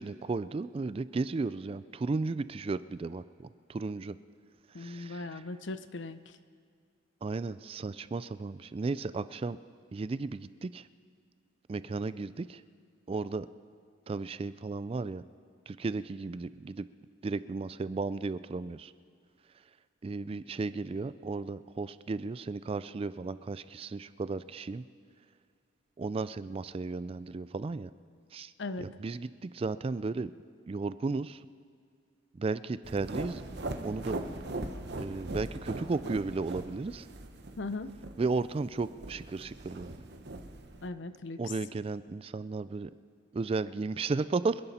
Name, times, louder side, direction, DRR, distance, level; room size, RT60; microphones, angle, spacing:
voice 1, 0.0-4.2 4.8-5.4 7.2-9.6 9.9-10.9 11.7-12.6 13.1-13.5 14.1-15.2 15.7-16.9 17.2-18.9 20.0-24.8 26.0-27.9 28.3-28.5 28.8-30.3 30.7-31.4 32.3-33.4 33.8-34.4 35.0-37.1 38.2-39.9 41.4-42.9 43.3-44.6, right 3 dB, 30° right, 16 dB, 0.3 m, -34 dB
voice 2, 4.7-6.2 28.6-28.9 37.6-37.9 40.8-41.4, left 3 dB, 65° left, 12 dB, 0.7 m, -38 dB
sound 1, 32.8-40.9, right 2 dB, 55° right, 1.0 m, -40 dB
27.0 x 11.0 x 4.3 m, 2.1 s
head